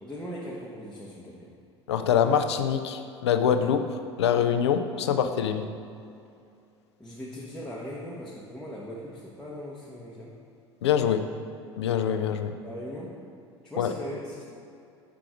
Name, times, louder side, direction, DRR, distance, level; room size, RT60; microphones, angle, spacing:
voice 1, 0.0-1.5 7.0-10.3 12.6-13.2 13.6-14.4, equal, 5° left, -7 dB, 1.0 m, -39 dB
voice 2, 1.9-5.7 10.8-11.2 11.8-12.5 13.8-13.9, left 8 dB, 70° left, 8 dB, 0.5 m, -24 dB
6.0 x 4.7 x 5.1 m, 2.5 s
figure-of-eight pair, 75°, 15 cm